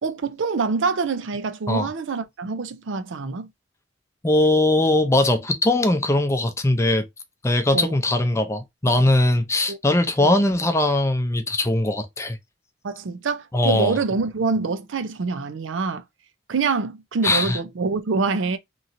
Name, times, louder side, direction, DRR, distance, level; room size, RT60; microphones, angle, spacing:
voice 1, 0.0-3.5 7.7-7.9 9.7-9.8 10.2-10.4 12.8-16.0 16.5-18.6, right 4 dB, 80° right, 0.5 m, -25 dB
voice 2, 4.2-7.1 7.4-12.4 13.5-14.0 17.2-17.6, left 1 dB, 15° left, 0.5 m, -20 dB
3.0 x 2.6 x 2.5 m
head